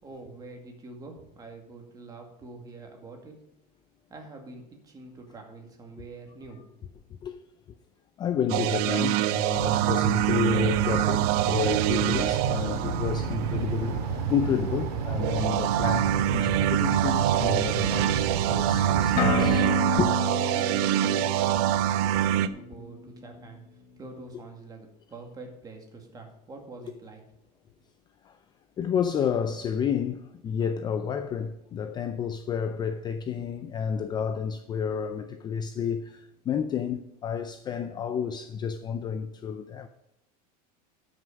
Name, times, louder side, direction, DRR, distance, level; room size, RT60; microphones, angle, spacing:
voice 1, 0.0-3.3 4.1-6.9 20.6-23.6 24.0-27.2, right 3 dB, 20° right, 2.1 m, -45 dB
voice 2, 8.2-20.2 28.2-28.4 28.8-39.9, left 7 dB, 20° left, 0.4 m, -30 dB
sound 1, 8.5-13.6 15.2-22.5, right 12 dB, 50° right, 0.6 m, -25 dB
sound 2, 9.5-19.6, right 6 dB, 75° right, 2.3 m, -30 dB
sound 3, 19.2-22.9, left 4 dB, 40° left, 1.4 m, -31 dB
12.5 x 6.3 x 5.2 m
supercardioid pair, 150°, 21 cm